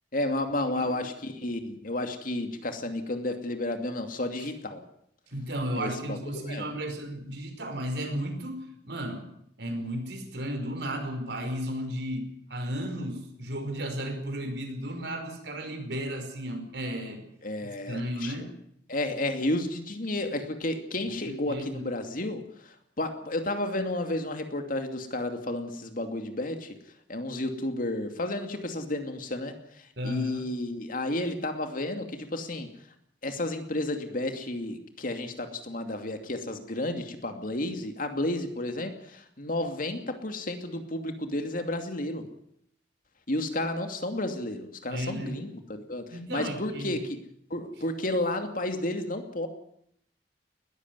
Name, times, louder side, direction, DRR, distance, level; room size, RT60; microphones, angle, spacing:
voice 1, 0.1-4.8 5.8-6.7 17.4-18.4 18.9-22.4 23.0-26.8 27.1-29.6 30.0-32.7 33.2-42.3 43.3-47.2 47.5-49.5, left 1 dB, 50° left, 6 dB, 2.6 m, -32 dB
voice 2, 5.3-9.3 9.6-17.2 17.6-18.6 21.0-21.9 30.0-30.5 44.9-45.4 46.1-47.0, equal, 70° right, 5 dB, 5.2 m, -34 dB
20.0 x 14.5 x 9.7 m, 0.72 s
head